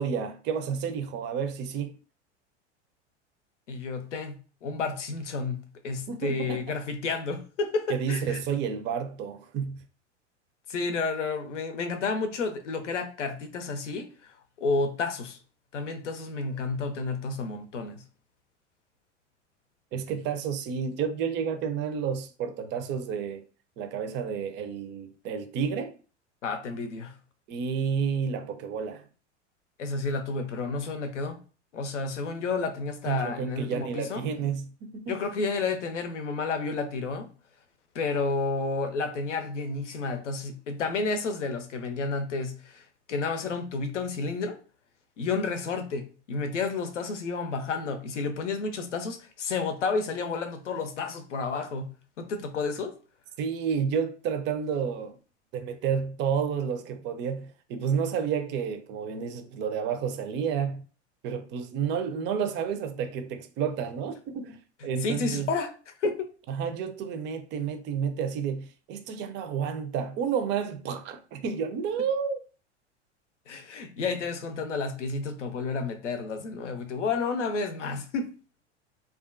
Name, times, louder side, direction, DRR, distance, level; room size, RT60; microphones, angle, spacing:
voice 1, 0.0-1.9 6.1-6.6 7.9-9.8 19.9-23.4 23.8-25.9 27.5-29.1 33.1-35.2 53.4-55.2 55.5-60.8 61.2-65.5 66.5-72.4, right 7 dB, 30° right, 0.4 m, -30 dB
voice 2, 3.7-4.3 4.6-8.4 10.7-15.4 15.7-18.0 26.4-27.1 29.8-31.4 31.7-34.2 35.1-37.3 37.9-44.6 45.2-51.9 52.2-52.9 65.0-66.3 73.5-78.3, left 4 dB, 85° left, 0.6 m, -31 dB
2.4 x 2.3 x 2.4 m
hypercardioid pair, 90°, 35 cm